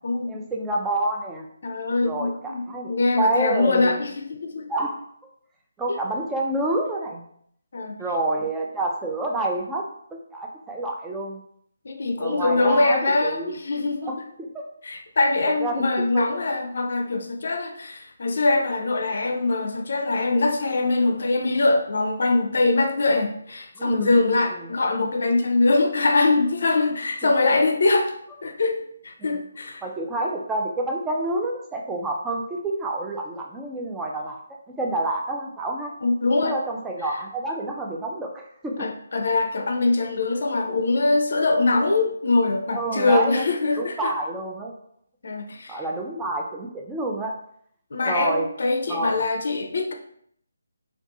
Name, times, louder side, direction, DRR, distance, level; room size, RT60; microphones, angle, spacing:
voice 1, 0.3-1.5 2.0-4.0 4.7-5.0 5.8-7.2 8.0-9.8 10.3-11.4 12.2-13.5 14.0-14.6 15.6-16.3 23.8-24.2 24.5-24.7 27.2-27.3 29.2-29.4 29.8-34.4 34.7-35.9 36.4-38.9 42.7-43.5 43.8-44.7 45.7-47.3 48.1-48.5 48.9-49.2, right 2 dB, 10° right, -1 dB, 0.3 m, -28 dB
voice 2, 1.6-4.7 5.9-6.0 7.7-7.9 11.8-14.3 14.8-28.1 28.4-29.8 36.0-36.6 38.8-44.1 45.2-45.8 47.9-49.9, left 3 dB, 60° left, 5 dB, 0.4 m, -23 dB
2.5 x 2.3 x 2.5 m, 0.67 s
figure-of-eight pair, 155°, 0 cm